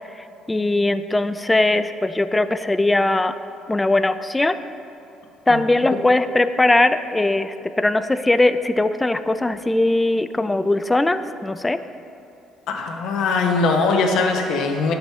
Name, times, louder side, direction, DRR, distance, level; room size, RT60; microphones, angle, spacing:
voice 1, 0.5-3.3 3.7-4.6 5.5-11.8, left 2 dB, 10° left, 12 dB, 0.3 m, -20 dB
voice 2, 12.7-14.9, left 4 dB, 70° left, 3 dB, 1.1 m, -21 dB
11.5 x 5.4 x 4.5 m, 2.9 s
cardioid pair, 115°, 0 cm